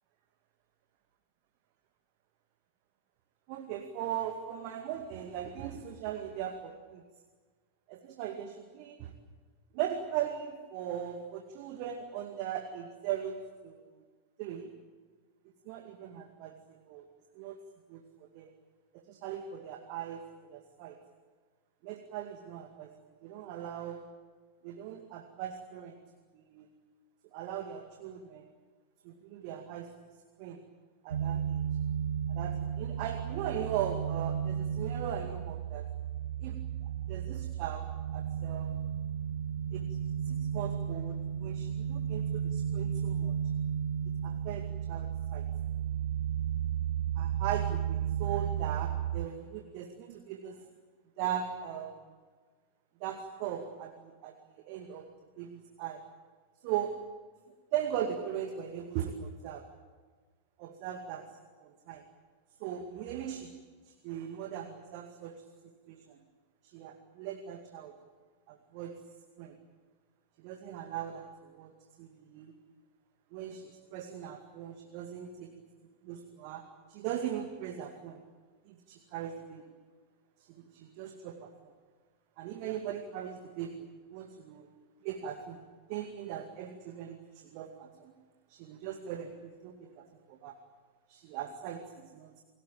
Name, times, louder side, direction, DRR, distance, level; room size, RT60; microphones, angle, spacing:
voice 1, 3.5-7.0 7.9-9.1 9.7-13.8 14.4-14.7 15.7-16.5 16.9-17.1 17.4-17.6 17.9-18.5 18.9-20.2 20.5-21.0 21.8-22.9 23.2-24.0 24.6-26.0 26.3-26.7 27.3-28.4 29.0-29.9 30.4-30.6 31.0-31.6 32.3-35.8 36.4-36.6 37.1-38.8 39.7-39.8 40.3-43.4 44.2-45.4 47.2-50.6 51.2-51.9 53.0-54.3 54.7-55.1 55.4-56.0 56.6-57.0 57.7-59.6 60.6-61.2 61.6-62.0 62.6-63.5 64.0-65.4 65.9-66.2 66.6-67.9 68.5-68.9 69.4-69.5 70.4-71.7 72.0-72.5 73.3-75.5 76.0-76.6 76.9-78.2 78.7-79.6 80.5-81.5 82.4-84.7 85.0-85.6 85.9-88.1 88.5-90.6 91.1-92.4, right 10 dB, 45° right, 5 dB, 2.2 m, -39 dB
sound 1, 31.1-49.3, right 9 dB, 65° right, 0.7 m, -33 dB
29.0 x 19.0 x 8.8 m, 1.5 s
figure-of-eight pair, 90°, 0 cm